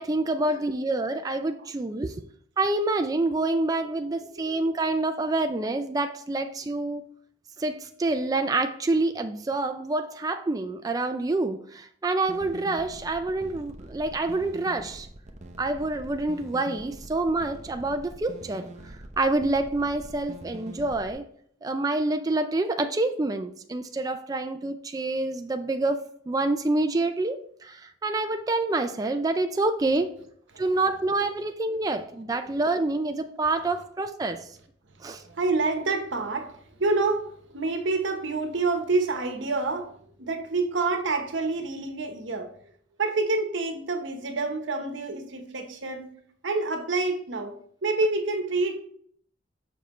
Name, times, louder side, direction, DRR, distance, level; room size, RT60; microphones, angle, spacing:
voice 1, 0.0-2.2 2.6-7.0 7.6-15.1 15.6-21.3 21.6-30.1 30.6-34.5 35.0-35.2, right 2 dB, 20° right, 0.3 m, -27 dB
voice 2, 4.1-4.6 30.5-30.6 35.0-39.9 40.2-42.5 43.0-46.1 46.4-48.8, right 3 dB, 80° right, 1.0 m, -28 dB
sound 1, 12.2-21.1, right 1 dB, 40° right, 0.8 m, -44 dB
7.2 x 5.6 x 3.1 m
head